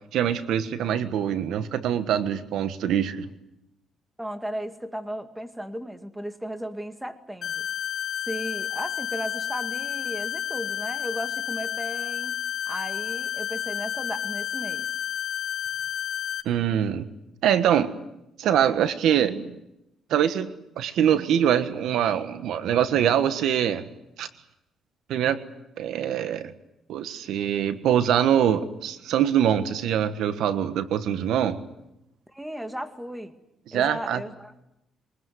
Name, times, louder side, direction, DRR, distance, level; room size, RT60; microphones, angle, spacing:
voice 1, 0.1-3.2 16.4-17.1 17.4-17.9 18.4-19.5 20.1-20.5 20.8-23.8 24.2-24.3 25.1-25.4 25.8-26.5 26.9-31.6 33.7-34.2, right 9 dB, 80° right, 11 dB, 1.4 m, -23 dB
voice 2, 4.2-7.7 8.3-12.4 12.7-14.9 32.3-33.4 33.7-34.5, equal, 5° right, 8 dB, 2.2 m, -35 dB
sound 1, 7.4-16.4, left 10 dB, 60° left, 3.9 m, -31 dB
23.5 x 21.5 x 9.5 m, 0.88 s
cardioid pair, 90°, 0 cm